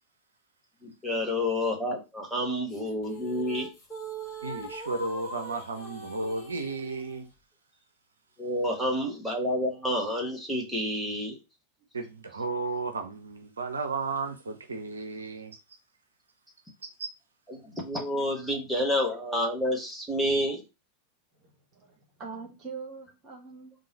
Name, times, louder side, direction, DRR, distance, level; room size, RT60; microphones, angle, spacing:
voice 1, 0.8-3.7 8.4-11.4 17.5-20.6, left 1 dB, ahead, 1.3 m, -29 dB
sound 1, 2.7-7.2, right 2 dB, 30° left, 1.7 m, -41 dB
voice 2, 4.4-7.3 11.9-15.6 17.0-17.1, right 3 dB, 70° right, 0.5 m, -34 dB
voice 3, 21.4-23.7, right 5 dB, 30° right, 1.5 m, -43 dB
3.8 x 2.6 x 4.1 m
figure-of-eight pair, 90°, 0 cm